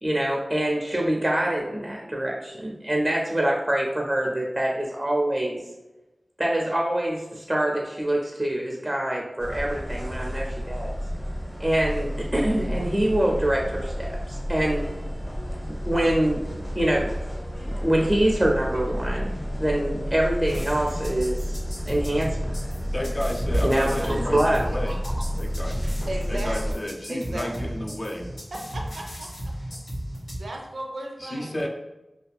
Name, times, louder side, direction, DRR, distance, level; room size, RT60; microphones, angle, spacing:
voice 1, 0.0-5.6 6.4-11.0 11.6-14.9 15.7-16.4 16.8-17.1 17.6-21.6 21.9-22.5 23.6-25.1, right 1 dB, 20° right, -1 dB, 0.4 m, -25 dB
sound 1, 9.4-26.7, equal, 25° left, 0.8 m, -31 dB
sound 2, 11.9-22.8 23.5-24.0, equal, 70° left, 1.3 m, -40 dB
sound 3, 20.4-30.4, equal, 90° left, 1.3 m, -36 dB
voice 2, 22.9-25.0 25.4-25.8 26.3-28.3 31.2-31.7, left 1 dB, 50° left, 0 dB, 0.5 m, -31 dB
voice 3, 26.1-26.8 27.1-27.7 28.5-29.3 30.4-31.6, right 1 dB, 85° right, 0 dB, 0.5 m, -35 dB
2.5 x 2.3 x 2.3 m, 1.0 s
wide cardioid pair, 45°, 0 cm